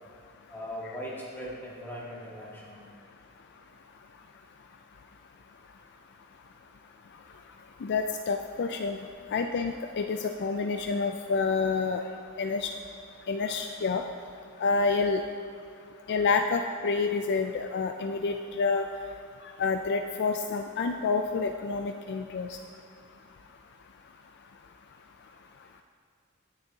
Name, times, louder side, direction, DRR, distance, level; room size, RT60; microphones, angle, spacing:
voice 1, 0.5-2.8, equal, 10° left, -6 dB, 2.0 m, -39 dB
voice 2, 7.8-9.0 9.3-12.0 12.4-12.7 13.3-14.0 14.6-15.2 16.1-18.8 19.6-22.5, left 4 dB, 50° left, 5 dB, 0.4 m, -28 dB
16.5 x 6.9 x 2.8 m, 2.5 s
head